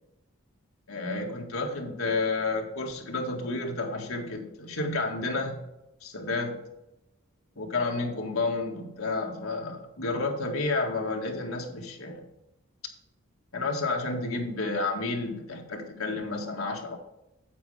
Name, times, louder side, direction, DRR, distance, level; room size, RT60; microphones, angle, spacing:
voice 1, 0.9-5.6 6.0-6.6 7.6-12.2 13.5-17.0, left 3 dB, 80° left, 1 dB, 1.8 m, -31 dB
9.6 x 7.6 x 3.5 m, 0.93 s
head